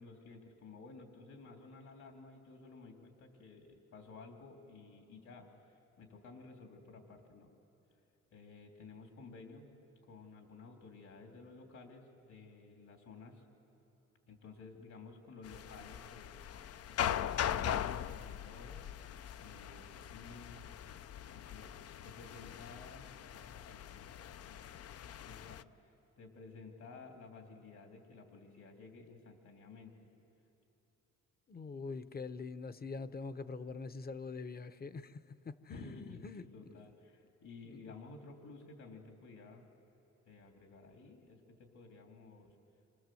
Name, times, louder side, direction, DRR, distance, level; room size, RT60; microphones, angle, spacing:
voice 1, 0.0-7.5 8.3-9.7 10.0-13.4 14.3-20.7 21.3-21.7 22.0-24.6 25.1-29.9 35.7-39.7 40.3-42.5, left 3 dB, 70° left, 3 dB, 3.4 m, -54 dB
sound 1, 15.4-25.6, left 10 dB, 55° left, 0.6 m, -41 dB
voice 2, 31.5-36.4, left 4 dB, 30° left, 13 dB, 0.9 m, -44 dB
28.0 x 25.5 x 7.8 m, 2.9 s
cardioid pair, 90°, 30 cm